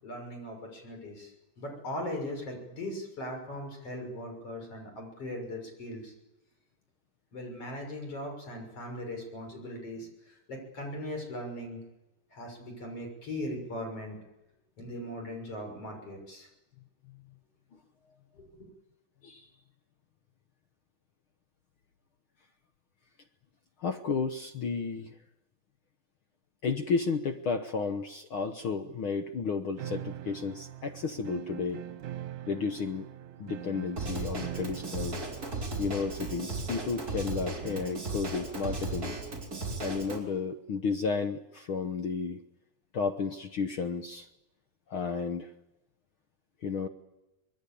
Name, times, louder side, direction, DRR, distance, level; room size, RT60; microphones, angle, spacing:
voice 1, 0.0-6.1 7.3-11.8 12.3-14.2 14.8-16.5 18.3-18.7, left 1 dB, 45° left, 3 dB, 7.3 m, -39 dB
voice 2, 23.8-25.2 26.6-31.8 32.5-33.1 33.4-35.2 35.8-39.2 39.8-42.4 42.9-44.3 44.9-45.5 46.6-46.9, left 5 dB, 65° left, 7 dB, 1.3 m, -32 dB
sound 1, 29.8-38.2, right 12 dB, 70° right, 2.5 m, -43 dB
Drum kit / Drum, 34.0-40.2, right 2 dB, 25° right, 4.4 m, -36 dB
25.0 x 21.5 x 8.6 m, 0.97 s
omnidirectional pair, 3.8 m